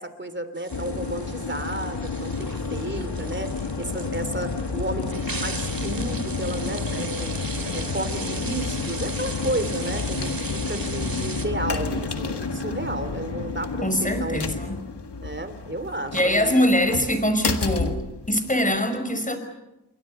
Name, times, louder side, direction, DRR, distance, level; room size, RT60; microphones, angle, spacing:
voice 1, 0.0-7.4 7.7-14.5 15.2-16.7, right 1 dB, 30° right, 11 dB, 3.3 m, -32 dB
sound 1, 0.5-11.5, right 4 dB, 60° right, 2.9 m, -38 dB
sound 2, 0.7-18.8, left 4 dB, 90° left, 1.8 m, -30 dB
voice 2, 13.8-14.8 16.1-19.4, equal, 20° left, 8 dB, 5.7 m, -23 dB
28.5 x 23.0 x 6.8 m, 0.97 s
wide cardioid pair, 45°, 39 cm